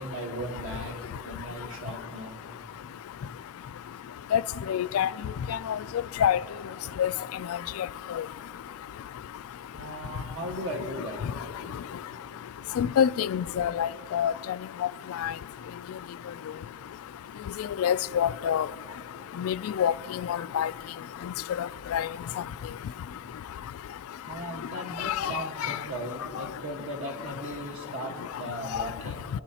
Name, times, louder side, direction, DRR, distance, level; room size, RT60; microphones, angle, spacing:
voice 1, 0.0-2.4 9.7-11.2 24.2-29.3, right 1 dB, 70° right, 1.5 m, -37 dB
voice 2, 4.7-5.1 5.5-5.8 6.2-6.4 7.0-7.1 12.8-14.3 15.2-15.3 17.8-18.7 19.4-19.9 20.3-20.7 21.9-22.1 25.0-25.3, left 9 dB, 80° left, 0.3 m, -25 dB
29.5 x 10.0 x 2.8 m
head